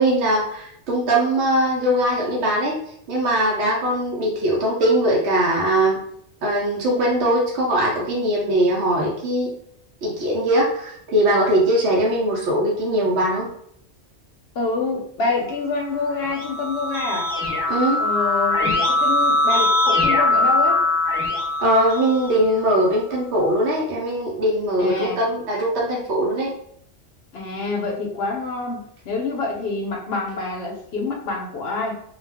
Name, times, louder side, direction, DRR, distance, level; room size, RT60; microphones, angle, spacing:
voice 1, 0.0-2.8 3.1-6.0 6.4-9.5 10.0-13.5 17.7-18.0 21.6-26.5, right 1 dB, 75° right, -3 dB, 1.0 m, -21 dB
voice 2, 14.5-17.3 18.0-20.8 24.8-25.2 27.3-32.0, left 3 dB, 65° left, 1 dB, 0.8 m, -27 dB
Keyboard (musical), 16.0-22.7, left 2 dB, 5° left, 1.0 m, -21 dB
2.3 x 2.3 x 3.3 m, 0.68 s
omnidirectional pair, 1.2 m